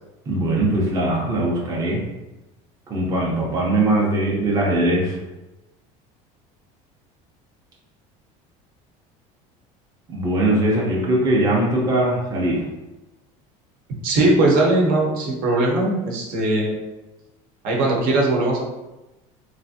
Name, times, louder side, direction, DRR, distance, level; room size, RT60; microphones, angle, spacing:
voice 1, 0.3-2.0 2.9-5.2 10.1-12.6, right 1 dB, 20° right, -4 dB, 0.6 m, -21 dB
voice 2, 14.0-16.8 17.6-18.6, right 2 dB, 60° right, -2 dB, 0.8 m, -19 dB
3.2 x 2.5 x 2.7 m, 1.0 s
cardioid pair, 140°, 17 cm